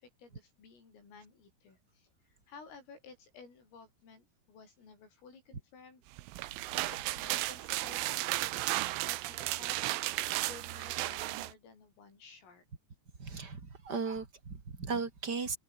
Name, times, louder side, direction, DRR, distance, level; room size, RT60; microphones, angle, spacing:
voice 1, 0.0-6.0 6.9-12.7, left 5 dB, 85° left, 11.0 m, -55 dB
sound 1, 6.2-11.5, right 18 dB, 80° right, 3.5 m, -34 dB
voice 2, 13.2-15.6, right 4 dB, 25° right, 2.6 m, -36 dB
omnidirectional pair, 5.7 m